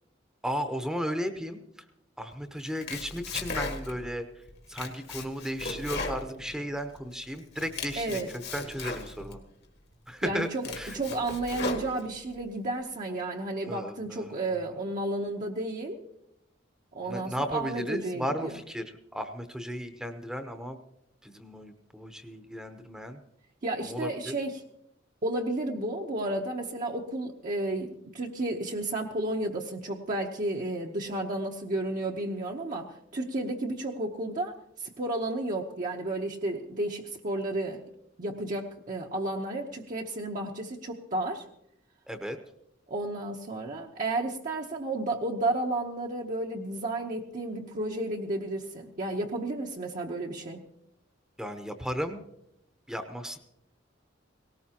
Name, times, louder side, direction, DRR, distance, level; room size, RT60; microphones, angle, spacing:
voice 1, 0.4-1.6 2.2-4.3 4.7-8.2 8.5-9.4 10.1-10.5 10.8-11.0 13.6-14.6 17.0-20.8 21.2-23.2 23.9-24.3 42.1-42.4 51.4-52.2 52.9-53.4, equal, 5° right, 6 dB, 0.8 m, -35 dB
Domestic sounds home sounds, 2.6-4.1 4.5-7.0 7.4-9.4 9.9-10.0 10.4-12.4, left 3 dB, 60° left, 1.8 m, -37 dB
voice 2, 8.0-8.3 10.2-10.7 10.9-16.0 16.9-18.5 23.6-24.6 25.2-37.8 38.2-41.5 42.9-50.6, right 2 dB, 45° right, 0 dB, 0.8 m, -32 dB
18.5 x 18.0 x 2.9 m, 0.80 s
head